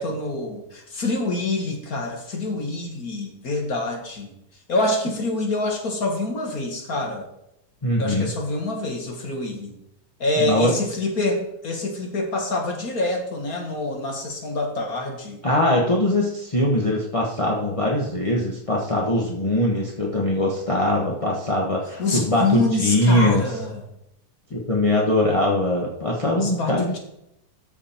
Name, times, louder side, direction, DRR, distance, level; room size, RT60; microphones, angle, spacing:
voice 1, 0.0-4.3 4.7-7.3 8.0-9.8 10.2-15.4 22.0-23.8 26.4-27.0, left 2 dB, 45° left, 2 dB, 1.7 m, -26 dB
voice 2, 7.8-8.3 10.4-10.7 15.4-23.4 24.5-26.9, left 1 dB, 25° left, -3 dB, 0.7 m, -22 dB
13.5 x 5.0 x 4.3 m, 0.81 s
omnidirectional pair, 2.4 m